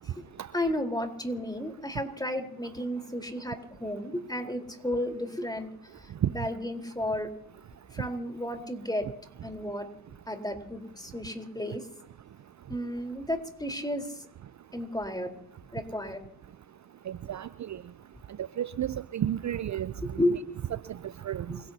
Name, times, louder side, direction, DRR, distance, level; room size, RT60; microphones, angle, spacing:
voice 1, 0.5-7.3 7.9-9.1 9.4-9.9 10.3-11.9 12.7-14.3 14.7-15.4 15.7-16.2 20.0-20.6 21.5-21.6, left 1 dB, 10° left, 4 dB, 4.2 m, -33 dB
voice 2, 17.1-17.8 18.4-20.2 21.2-21.6, right 10 dB, 45° right, 16 dB, 0.7 m, -33 dB
29.0 x 17.5 x 2.9 m, 0.76 s
hypercardioid pair, 40°, 40 cm